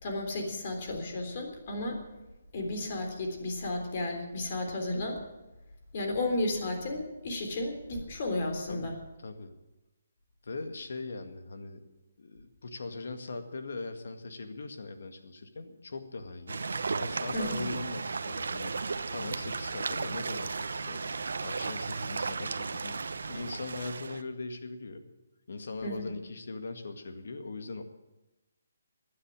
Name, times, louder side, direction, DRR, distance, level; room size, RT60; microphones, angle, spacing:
voice 1, 0.0-2.0 2.5-5.2 5.9-8.9 17.3-17.7 25.8-26.1, left 2 dB, 40° left, 4 dB, 3.6 m, -33 dB
voice 2, 9.2-9.5 10.4-11.9 12.2-16.7 17.0-18.7 19.1-21.0 21.4-23.0 23.2-25.1 25.5-27.8, left 3 dB, 70° left, 7 dB, 2.0 m, -40 dB
sound 1, 16.5-24.2, right 4 dB, 75° right, 0.9 m, -35 dB
15.5 x 9.8 x 8.9 m, 1.0 s
hypercardioid pair, 160°, 0 cm